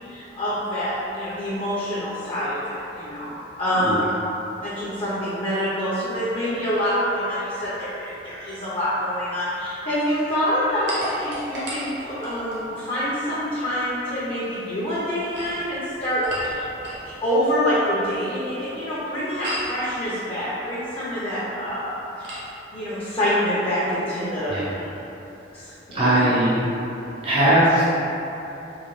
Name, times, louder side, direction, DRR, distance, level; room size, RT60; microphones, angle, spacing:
voice 1, 0.1-3.3 3.6-4.0 4.6-16.7 17.2-21.9 22.2-22.4 22.7-24.5 25.5-26.2, equal, 30° left, -10 dB, 0.6 m, -26 dB
sound 1, 10.9-12.7 15.1-17.1 19.4-19.8 22.2-22.5, equal, 65° right, 1.0 m, -33 dB
voice 2, 24.5-24.9 25.9-26.6 27.2-27.8, right 1 dB, 30° right, -10 dB, 0.4 m, -19 dB
3.8 x 2.6 x 3.1 m, 3.0 s
head